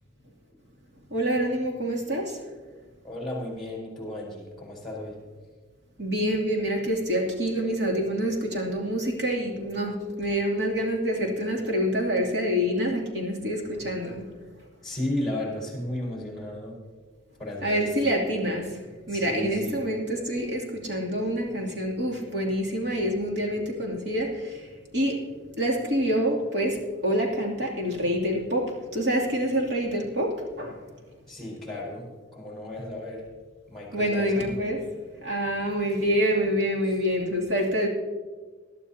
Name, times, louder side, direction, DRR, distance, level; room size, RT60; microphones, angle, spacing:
voice 1, 1.1-2.4 6.0-14.2 17.6-18.7 19.1-24.7 24.9-25.2 25.6-30.8 33.9-34.8 35.2-37.9, equal, 65° right, -1 dB, 2.9 m, -26 dB
voice 2, 3.0-5.2 14.8-16.8 17.4-17.9 19.1-19.9 31.3-33.3 33.7-34.5 36.8-37.0, left 1 dB, ahead, -4 dB, 4.6 m, -34 dB
21.0 x 12.0 x 2.9 m, 1.4 s
head